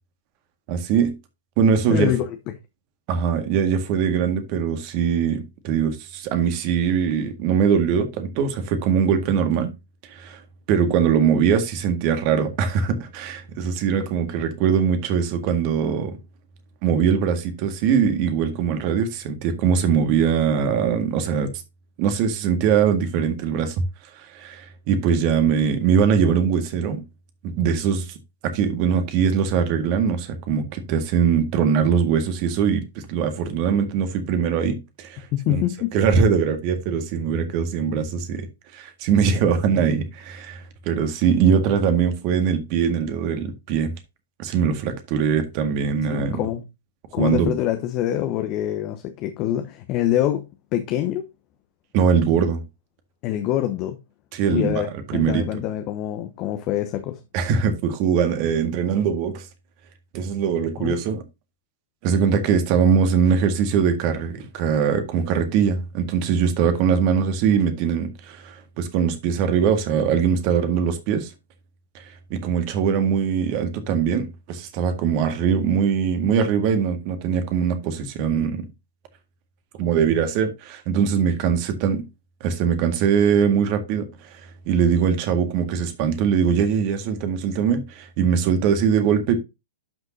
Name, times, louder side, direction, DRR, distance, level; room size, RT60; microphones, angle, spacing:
voice 1, 0.7-1.1 1.6-2.1 3.1-9.7 10.1-10.4 10.7-16.2 16.8-21.5 22.0-23.8 24.1-27.0 27.4-28.2 28.4-35.6 35.9-38.5 38.7-43.9 44.4-46.4 47.2-47.5 51.9-52.6 54.3-54.8 55.1-55.5 57.3-59.5 60.1-61.2 62.0-71.3 71.9-72.0 72.3-78.7 79.8-82.0 82.4-89.4, right 7 dB, 40° right, 1.8 m, -21 dB
voice 2, 1.9-2.2 35.3-35.9 46.1-46.6 47.1-51.3 53.2-54.0 54.5-57.2 60.8-60.9, left 12 dB, 35° left, 1.0 m, -25 dB
12.0 x 6.0 x 2.8 m
figure-of-eight pair, 110°, 0 cm